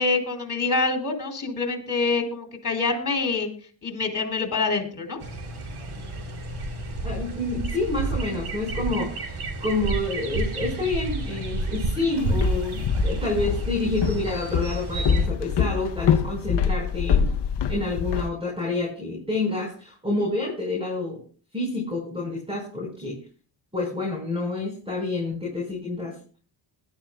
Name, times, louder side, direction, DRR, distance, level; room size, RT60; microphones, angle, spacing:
voice 1, 0.0-3.5 3.8-5.2, left 4 dB, 40° left, 2 dB, 4.5 m, -26 dB
sound 1, 5.2-15.3, right 2 dB, 80° right, 3.1 m, -30 dB
voice 2, 7.0-17.3 17.7-21.2 21.5-23.2 23.7-26.2, left 2 dB, 10° right, 0 dB, 4.6 m, -28 dB
Walk footsteps, 12.2-18.3, left 7 dB, 55° left, 0.8 m, -25 dB
21.0 x 12.0 x 2.3 m, 0.39 s
cardioid pair, 95°, 49 cm